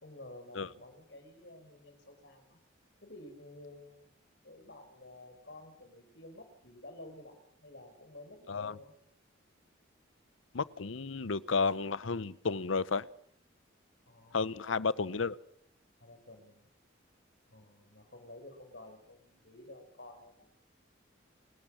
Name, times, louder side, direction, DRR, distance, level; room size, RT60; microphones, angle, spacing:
voice 1, 0.0-2.6 3.0-4.2 4.4-8.9 14.1-15.0 16.0-16.7 17.5-20.5, left 1 dB, 60° left, 6 dB, 4.9 m, -52 dB
voice 2, 10.5-13.1 14.3-15.4, left 4 dB, 85° left, 20 dB, 0.8 m, -32 dB
29.0 x 13.0 x 7.5 m, 0.69 s
head